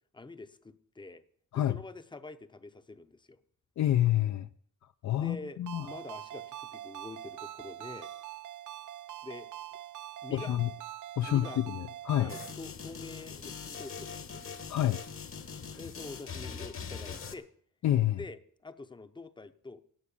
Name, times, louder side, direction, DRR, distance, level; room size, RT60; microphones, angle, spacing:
voice 1, 0.1-1.2 1.5-3.4 5.2-8.1 9.2-9.5 10.2-10.6 11.3-11.6 12.1-14.4 15.8-17.5 18.1-19.8, left 3 dB, 15° left, 11 dB, 0.6 m, -46 dB
voice 2, 3.8-4.5 5.0-5.9 10.3-10.7 11.2-12.3 14.7-15.0 17.8-18.2, left 12 dB, 65° left, 9 dB, 0.5 m, -28 dB
Ringtone, 5.7-12.5, right 12 dB, 70° right, 0.6 m, -44 dB
sound 1, 12.3-17.3, left 6 dB, 45° left, 1.1 m, -42 dB
17.0 x 6.1 x 8.4 m, 0.63 s
wide cardioid pair, 160°, 31 cm